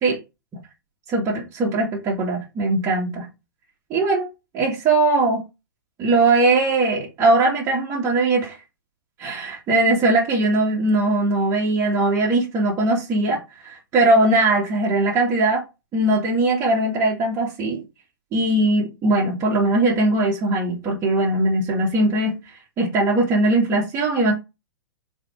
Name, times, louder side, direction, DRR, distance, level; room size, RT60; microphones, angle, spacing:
voice 1, 1.1-3.3 3.9-4.3 4.5-5.4 6.0-8.6 9.2-15.6 15.9-17.8 18.3-22.4 22.8-24.3, right 2 dB, 25° right, 2.3 m, -20 dB
4.8 x 4.5 x 4.9 m
figure-of-eight pair, 110°, 12 cm